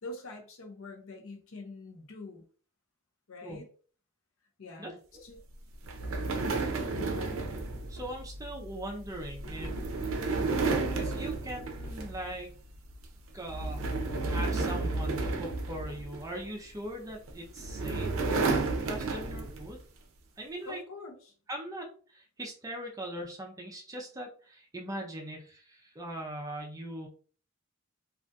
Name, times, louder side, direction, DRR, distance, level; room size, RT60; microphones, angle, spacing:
voice 1, 0.0-2.4 3.3-3.7 4.6-5.4 6.9-7.5 20.6-21.3, left 2 dB, 80° left, 2 dB, 0.6 m, -45 dB
sound 1, 5.8-12.4 12.8-13.0 13.5-16.5 17.3-19.7, right 3 dB, 75° right, 0.5 m, -32 dB
voice 2, 7.9-9.7 10.0-10.4 11.0-12.5 13.3-13.9 14.3-19.8 20.4-20.8 21.5-27.1, right 1 dB, 15° right, 1 dB, 0.4 m, -40 dB
2.6 x 2.4 x 2.2 m, 0.41 s
head